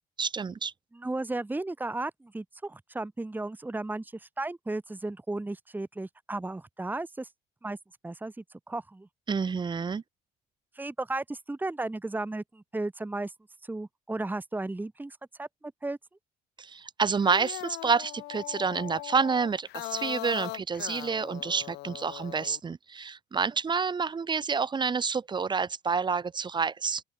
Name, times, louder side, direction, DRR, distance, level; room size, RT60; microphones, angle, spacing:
voice 1, 0.2-0.7 9.3-10.0 16.6-27.0, right 5 dB, 25° right, 1.2 m, -28 dB
voice 2, 0.9-7.3 7.6-7.8 8.0-9.1 10.8-13.3 13.6-16.0, right 2 dB, 10° right, 2.0 m, -35 dB
sound 1, 17.1-22.6, left 20 dB, 85° left, 0.6 m, -40 dB
open air
cardioid pair, 110°, 17 cm